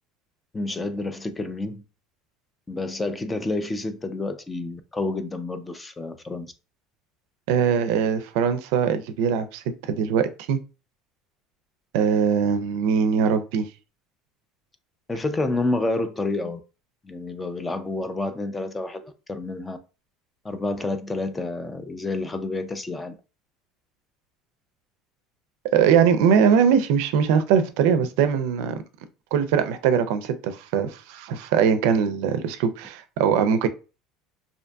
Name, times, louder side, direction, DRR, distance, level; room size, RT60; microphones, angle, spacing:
voice 1, 0.5-1.8 2.7-6.5 15.1-16.6 17.0-19.8 20.4-23.2, left 2 dB, 15° left, 0.3 m, -29 dB
voice 2, 7.5-10.6 11.9-13.7 25.7-28.7 29.3-33.7, right 7 dB, 75° right, 0.4 m, -21 dB
2.6 x 2.5 x 2.2 m
cardioid pair, 140°, 0 cm